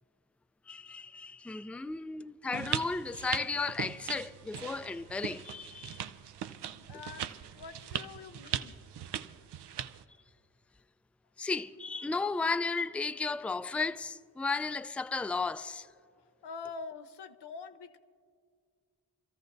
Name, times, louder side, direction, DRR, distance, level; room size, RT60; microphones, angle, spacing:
voice 1, 0.7-6.1 11.4-15.9, left 4 dB, 5° left, 0.3 m, -34 dB
sound 1, 2.5-10.0, right 10 dB, 80° right, 0.5 m, -39 dB
voice 2, 6.8-8.8 16.1-18.0, left 4 dB, 90° left, 0.7 m, -45 dB
28.5 x 13.5 x 2.6 m
cardioid pair, 50°, 40 cm